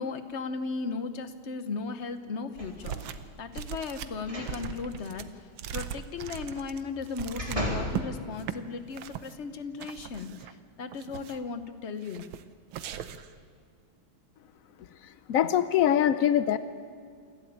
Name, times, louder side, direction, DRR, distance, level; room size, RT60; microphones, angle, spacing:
voice 1, 0.0-5.4 5.7-12.3, left 4 dB, 45° left, 10 dB, 1.0 m, -36 dB
sound 1, 2.6-3.1 4.2-4.6 5.0-5.1 6.7-7.9 8.5-8.6, equal, 15° right, 4.0 m, -35 dB
sound 2, 2.8-3.3 3.5-8.1 8.4-8.6 8.9-9.3 9.8-10.5 10.9-11.5 12.0-12.4 12.7-13.3, right 10 dB, 75° right, 1.7 m, -39 dB
voice 2, 15.3-16.6, left 10 dB, 85° left, 13 dB, 0.7 m, -23 dB
28.0 x 12.0 x 8.8 m, 2.2 s
omnidirectional pair, 2.3 m